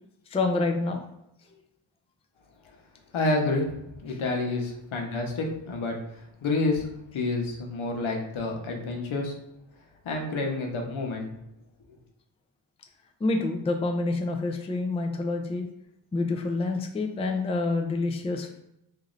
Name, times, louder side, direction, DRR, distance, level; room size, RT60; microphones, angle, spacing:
voice 1, 0.3-1.0 1.5-1.6 13.2-15.7 16.1-18.6, left 3 dB, 15° left, 4 dB, 0.3 m, -27 dB
voice 2, 3.1-6.9 7.1-9.3 10.0-11.3, left 2 dB, 85° left, 2 dB, 0.9 m, -29 dB
3.0 x 2.6 x 3.8 m, 0.80 s
wide cardioid pair, 115°, 48 cm